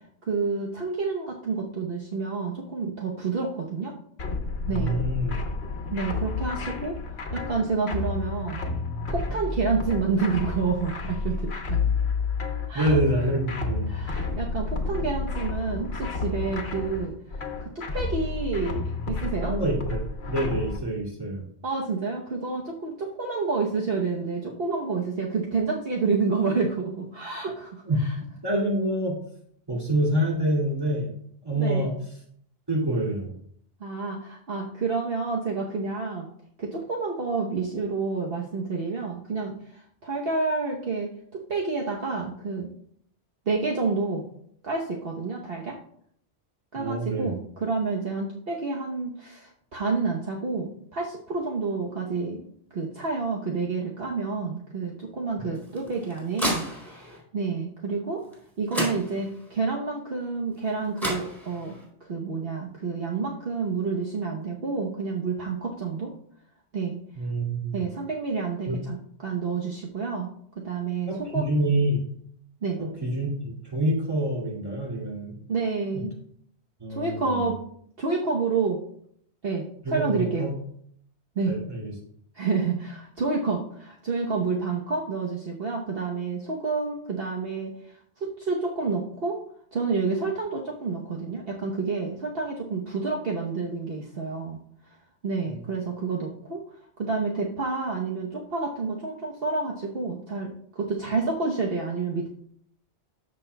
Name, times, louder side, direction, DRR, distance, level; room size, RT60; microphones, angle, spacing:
voice 1, 0.2-3.9 4.7-4.9 5.9-7.0 7.3-8.6 9.1-11.8 12.7-13.0 13.9-19.5 21.6-28.1 31.5-31.9 33.8-36.3 36.6-42.7 43.5-44.3 44.6-45.8 46.7-52.5 52.7-58.2 58.6-61.7 62.0-66.1 66.7-67.0 67.7-70.3 70.6-71.5 72.6-72.8 75.5-76.1 76.9-77.6 78.0-78.8 79.4-80.5 81.4-81.6 82.3-89.4 89.7-94.6 95.2-96.6 97.0-100.5 100.7-102.3, right 4 dB, 55° right, -1 dB, 1.2 m, -29 dB
sound 1, 4.2-20.8, left 4 dB, 65° left, 1.3 m, -30 dB
voice 2, 4.7-5.3 12.7-13.9 19.4-20.0 20.3-21.4 27.9-28.0 28.4-29.2 29.7-31.1 31.4-31.9 32.7-33.3 46.7-47.3 67.2-67.8 68.7-68.8 71.1-72.0 72.8-75.4 76.8-77.3 79.8-80.5 81.5-81.9 95.5-95.6, right 1 dB, 20° right, -4 dB, 2.3 m, -26 dB
sound 2, 55.6-57.2 58.3-58.4 58.7-59.5 60.7-60.8 61.0-61.8, equal, ahead, 3.5 m, -32 dB
13.5 x 6.4 x 2.2 m, 0.65 s
omnidirectional pair, 1.2 m